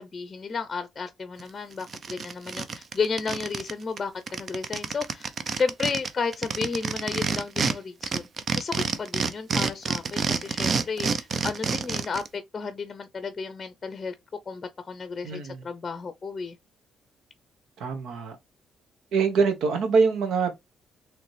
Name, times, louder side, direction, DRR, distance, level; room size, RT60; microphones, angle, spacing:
voice 1, 0.0-8.3 8.5-14.1 14.5-16.6, left 5 dB, 35° left, 0.6 m, -33 dB
sound 1, 1.4-1.5 1.8-3.7 4.0-4.1 4.3-7.7 8.0-12.3, right 5 dB, 50° right, 0.6 m, -28 dB
voice 2, 15.2-15.6 17.8-18.4 19.1-20.6, right 5 dB, 80° right, 1.2 m, -24 dB
3.9 x 3.2 x 3.1 m
cardioid pair, 90°, 0 cm